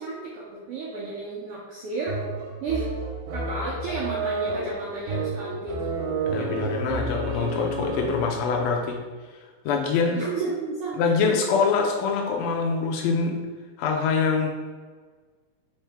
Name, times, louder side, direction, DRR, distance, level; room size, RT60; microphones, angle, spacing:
voice 1, 0.0-2.2 2.6-2.9 3.3-6.0 6.3-6.7 10.1-11.4, right 3 dB, 90° right, -5 dB, 1.3 m, -32 dB
sound 1, 2.1-8.5, right 2 dB, 75° right, 1.8 m, -30 dB
voice 2, 6.3-9.0 9.6-10.2 11.0-13.4 13.8-14.5, left 5 dB, 80° left, 1 dB, 1.6 m, -24 dB
4.4 x 3.6 x 3.3 m, 1.4 s
omnidirectional pair, 3.4 m